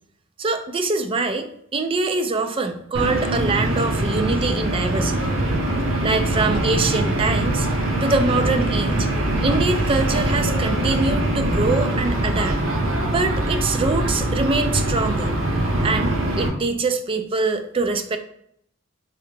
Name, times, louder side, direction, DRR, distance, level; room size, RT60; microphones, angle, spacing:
voice 1, 0.4-5.2 6.0-7.7 8.0-9.1 9.4-12.6 13.1-15.3 15.8-18.2, right 3 dB, 25° right, 8 dB, 0.3 m, -24 dB
sound 1, 2.9-16.5, right 1 dB, 75° right, 0.8 m, -22 dB
3.3 x 3.3 x 3.2 m, 0.69 s
head